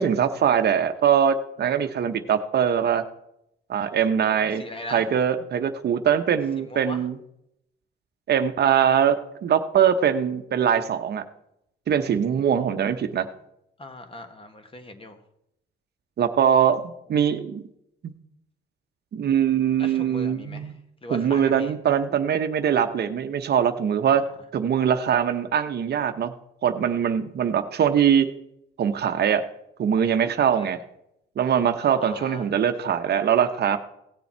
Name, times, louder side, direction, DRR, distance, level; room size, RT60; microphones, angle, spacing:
voice 1, 0.0-3.0 3.7-4.6 4.9-7.2 8.3-11.2 11.9-13.3 16.2-17.6 18.0-18.1 19.1-20.7 21.1-24.2 24.5-26.3 26.6-28.3 28.8-29.4 29.8-30.8 31.4-33.8, right 8 dB, 55° right, 8 dB, 0.8 m, -22 dB
voice 2, 4.1-5.1 6.7-7.0 13.8-15.2 19.8-20.7 21.0-21.7 24.2-24.3 30.6-30.7 32.0-32.5, left 1 dB, 25° left, 7 dB, 1.4 m, -40 dB
17.0 x 7.0 x 4.4 m, 0.80 s
cardioid pair, 90°, 20 cm